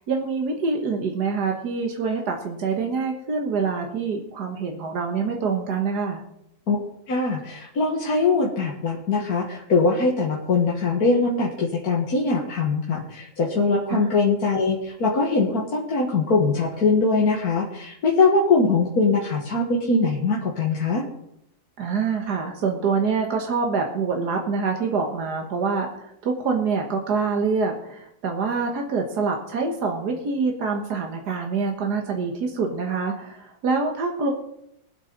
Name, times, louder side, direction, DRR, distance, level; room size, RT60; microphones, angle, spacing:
voice 1, 0.0-6.2 13.9-14.0 21.8-34.3, right 4 dB, 85° right, 2 dB, 2.0 m, -25 dB
voice 2, 7.1-21.0, left 3 dB, 70° left, -2 dB, 2.1 m, -22 dB
22.5 x 8.2 x 4.0 m, 0.78 s
omnidirectional pair, 1.7 m